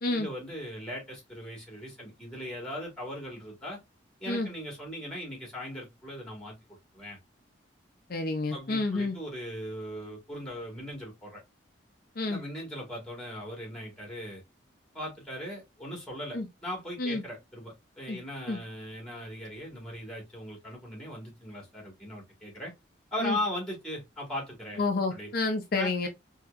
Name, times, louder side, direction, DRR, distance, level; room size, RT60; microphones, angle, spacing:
voice 1, 0.1-3.8 4.2-7.2 8.5-11.4 12.3-14.4 14.9-22.7 23.1-24.8 25.1-25.3 25.7-26.1, left 1 dB, 5° left, 1.8 m, -39 dB
voice 2, 8.1-9.2 12.2-12.4 16.3-16.5 17.0-17.2 18.1-18.2 18.5-18.6 23.2-23.4 24.8-26.1, left 3 dB, 55° left, 0.6 m, -29 dB
4.2 x 2.8 x 2.5 m
head